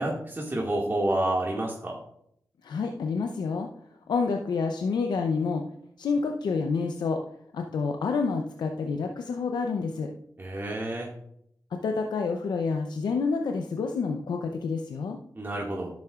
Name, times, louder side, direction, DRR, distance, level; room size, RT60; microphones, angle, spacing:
voice 1, 0.0-2.0 10.4-11.1 15.4-15.9, right 1 dB, 30° right, -2 dB, 1.9 m, -29 dB
voice 2, 2.6-3.7 4.1-5.6 6.0-7.2 7.5-10.1 11.7-15.2, left 4 dB, 80° left, 4 dB, 0.6 m, -28 dB
10.5 x 7.5 x 2.4 m, 0.70 s
supercardioid pair, 40°, 7 cm